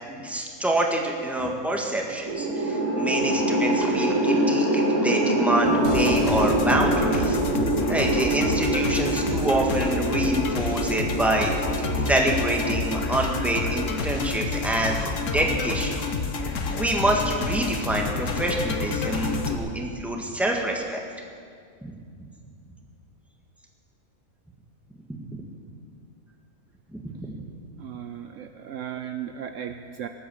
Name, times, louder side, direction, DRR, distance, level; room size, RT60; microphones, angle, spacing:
voice 1, 0.1-7.4 7.9-11.5 12.0-16.0 16.6-21.0 21.8-21.9 25.2-25.3 27.0-27.4, right 1 dB, ahead, 0 dB, 1.6 m, -26 dB
sound 1, 2.3-14.6, right 1 dB, 90° right, 2.9 m, -26 dB
sound 2, 5.6-9.9, right 1 dB, 25° right, 0.8 m, -34 dB
sound 3, 5.8-19.6, left 4 dB, 60° left, 1.4 m, -29 dB
voice 2, 27.8-30.1, right 9 dB, 65° right, 7 dB, 1.0 m, -36 dB
20.0 x 8.5 x 7.2 m, 2.2 s
omnidirectional pair, 1.5 m